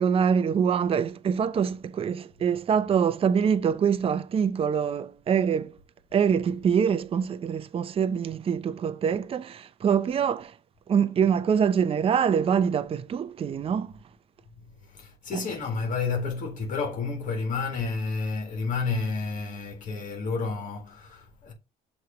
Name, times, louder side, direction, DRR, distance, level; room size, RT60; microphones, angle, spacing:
voice 1, 0.0-5.7 6.1-10.5 10.9-13.9 15.3-15.5, right 7 dB, 35° right, 0.5 m, -25 dB
voice 2, 14.8-21.5, left 4 dB, 50° left, 1.9 m, -30 dB
6.4 x 3.1 x 5.0 m
cardioid pair, 110°, 17 cm